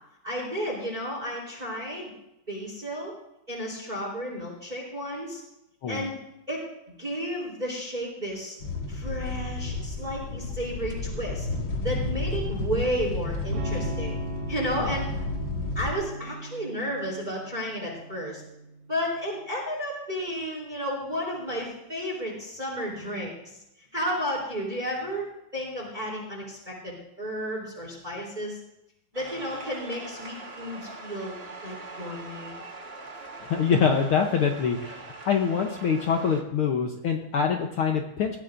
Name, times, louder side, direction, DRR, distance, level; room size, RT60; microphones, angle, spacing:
voice 1, 0.2-2.1 2.5-3.1 3.5-5.4 5.9-6.2 6.5-6.6 7.0-8.6 8.9-11.5 11.8-14.2 14.5-15.1 15.7-18.4 18.9-23.3 23.9-28.6 29.1-32.6, equal, 15° right, -3 dB, 3.6 m, -32 dB
sound 1, 8.6-15.9, left 3 dB, 45° left, 1.5 m, -32 dB
Electric guitar / Strum, 13.5-19.2, right 2 dB, 65° right, 2.5 m, -38 dB
sound 2, 29.1-36.4, right 3 dB, 45° right, 0.7 m, -42 dB
voice 2, 33.4-38.4, left 6 dB, 70° left, 3 dB, 1.3 m, -25 dB
19.0 x 15.0 x 2.6 m, 0.85 s
omnidirectional pair, 3.5 m